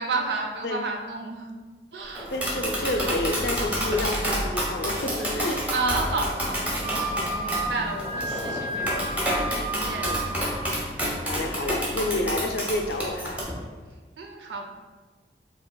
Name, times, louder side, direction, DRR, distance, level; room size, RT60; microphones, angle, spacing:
voice 1, 0.0-1.5 1.9-2.3 3.1-3.2 5.7-9.1 9.5-10.3 14.2-14.7, right 3 dB, 85° right, 2 dB, 0.6 m, -31 dB
Tap, 2.1-13.4, equal, 10° right, 0.8 m, -29 dB
voice 2, 2.3-5.6 10.0-10.2 10.9-13.4, left 1 dB, 70° left, 5 dB, 0.5 m, -29 dB
sound 1, 4.8-14.0, left 1 dB, 10° left, 0.4 m, -41 dB
Wind instrument woodwind instrument, 6.8-10.5, right 1 dB, 35° right, 1.4 m, -32 dB
7.2 x 2.8 x 2.2 m, 1.4 s
head